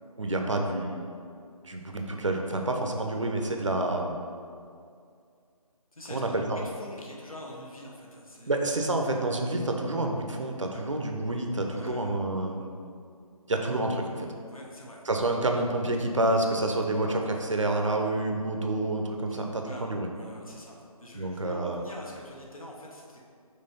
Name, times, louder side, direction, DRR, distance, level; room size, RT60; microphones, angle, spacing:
voice 1, 0.2-1.0 1.6-4.2 6.1-6.6 8.5-12.7 13.5-14.3 15.1-20.1 21.1-21.8, right 2 dB, 55° right, 3 dB, 0.7 m, -28 dB
voice 2, 5.9-8.8 10.7-10.9 11.7-12.0 14.5-15.1 19.3-19.9 20.2-23.2, left 1 dB, 65° left, -2 dB, 1.3 m, -45 dB
5.7 x 3.3 x 5.1 m, 2.3 s
figure-of-eight pair, 155°, 19 cm